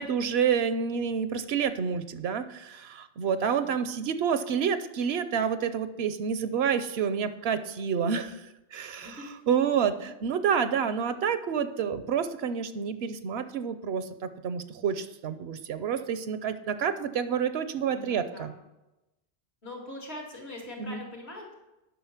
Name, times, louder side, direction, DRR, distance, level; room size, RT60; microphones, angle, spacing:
voice 1, 0.0-9.2 9.5-18.5 20.8-21.0, right 7 dB, 70° right, 11 dB, 0.9 m, -29 dB
voice 2, 3.3-3.7 8.9-9.3 17.9-18.5 19.6-21.5, left 2 dB, 75° left, -1 dB, 2.8 m, -42 dB
9.5 x 6.0 x 5.8 m, 0.98 s
omnidirectional pair, 1.1 m